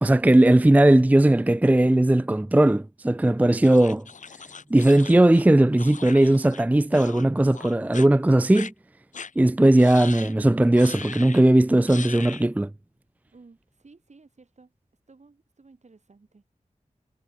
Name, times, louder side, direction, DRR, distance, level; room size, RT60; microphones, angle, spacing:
voice 1, 0.0-4.0 4.7-8.7 9.4-12.7, right 1 dB, 10° right, 0.5 m, -18 dB
sound 1, 3.6-6.6 6.9-7.3 7.5-8.1 8.5-8.7 9.1-9.3 9.8-10.3 10.8-11.4 11.9-12.5, left 5 dB, 70° left, 0.7 m, -40 dB
voice 2, 13.3-14.7 15.1-16.4, right 3 dB, 60° right, 5.4 m, -54 dB
wide cardioid pair, 60°, 13 cm